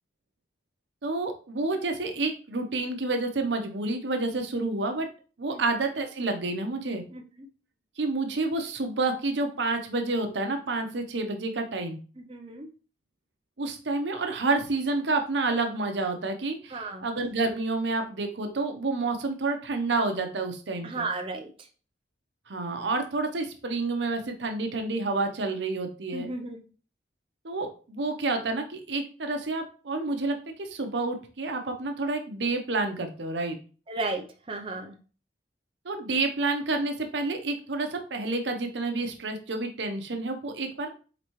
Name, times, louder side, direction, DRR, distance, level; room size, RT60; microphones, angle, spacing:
voice 1, 1.0-5.1 5.4-7.0 8.0-12.0 13.6-21.1 22.5-26.3 27.4-33.6 35.8-40.9, right 3 dB, 80° right, 5 dB, 0.8 m, -29 dB
voice 2, 7.1-7.5 12.2-12.7 16.7-17.1 20.8-21.7 26.1-26.6 33.9-35.0, right 3 dB, 30° right, 2 dB, 0.5 m, -34 dB
4.3 x 4.0 x 3.1 m, 0.37 s
head